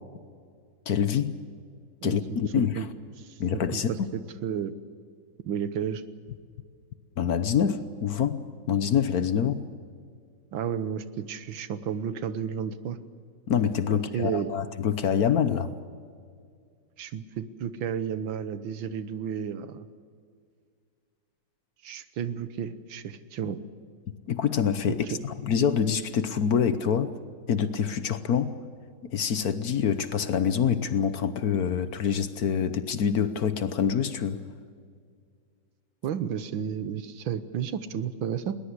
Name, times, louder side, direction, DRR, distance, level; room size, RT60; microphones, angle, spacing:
voice 1, 0.9-1.4 2.0-2.8 3.4-3.9 7.2-9.7 13.5-15.7 24.3-27.1 27.5-28.6 29.1-34.4, left 7 dB, 55° left, 12 dB, 1.3 m, -26 dB
voice 2, 2.0-2.4 2.7-2.9 3.2-3.4 3.7-4.7 5.5-6.0 10.5-13.0 13.9-14.5 17.0-19.9 21.8-23.6 24.9-25.2 36.0-38.6, right 8 dB, 85° right, 12 dB, 1.8 m, -32 dB
20.5 x 19.5 x 8.2 m, 2.2 s
omnidirectional pair, 2.1 m